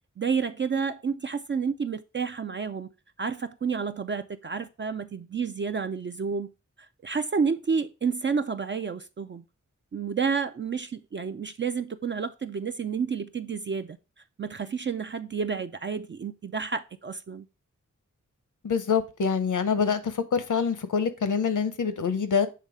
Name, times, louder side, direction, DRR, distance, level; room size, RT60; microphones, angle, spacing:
voice 1, 0.2-2.9 3.2-6.5 7.0-9.4 9.9-14.0 14.4-17.5, right 5 dB, 35° right, 0.4 m, -30 dB
voice 2, 18.6-22.5, left 6 dB, 70° left, 0.8 m, -25 dB
6.9 x 3.2 x 4.8 m
wide cardioid pair, 60°, 31 cm